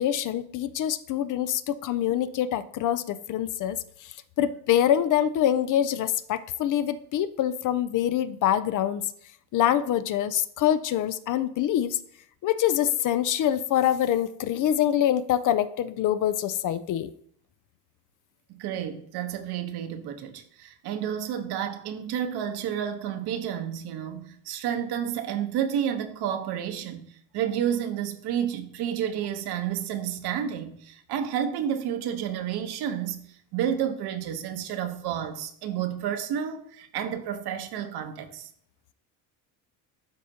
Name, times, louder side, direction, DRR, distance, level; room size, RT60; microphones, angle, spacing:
voice 1, 0.0-3.8 4.4-9.1 9.5-12.0 12.4-17.1, left 11 dB, 45° left, 0.5 m, -25 dB
voice 2, 18.5-27.1 27.3-33.2 33.5-38.5, right 9 dB, 60° right, 1.1 m, -30 dB
12.0 x 4.3 x 2.8 m
supercardioid pair, 85°, 44 cm